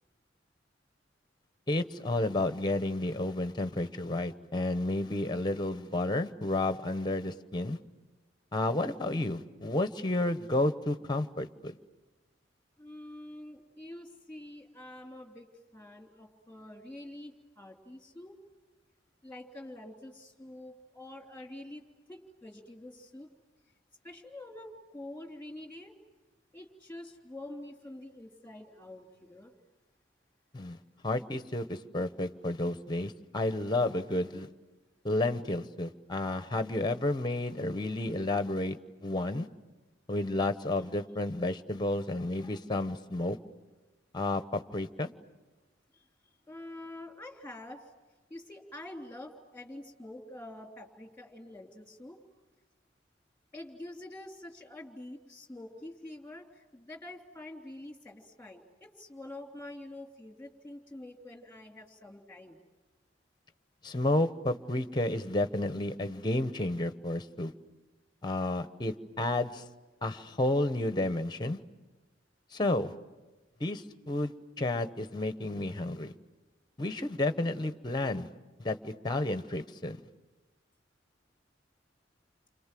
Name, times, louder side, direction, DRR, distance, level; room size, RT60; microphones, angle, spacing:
voice 1, 1.7-7.8 8.5-11.7 30.5-30.8 31.0-34.5 35.0-39.5 40.1-43.4 44.1-45.1 63.8-67.5 68.2-69.6 70.0-71.6 72.5-72.9 73.6-76.1 76.8-78.3 78.6-80.0, left 2 dB, 25° left, 11 dB, 1.0 m, -31 dB
voice 2, 12.8-15.5 15.7-18.4 19.2-21.8 22.1-23.3 24.0-25.9 26.5-29.5 45.9-46.1 46.5-47.9 48.3-52.2 53.5-62.6, left 1 dB, 10° left, 3 dB, 3.2 m, -46 dB
30.0 x 26.0 x 7.6 m, 1.2 s
head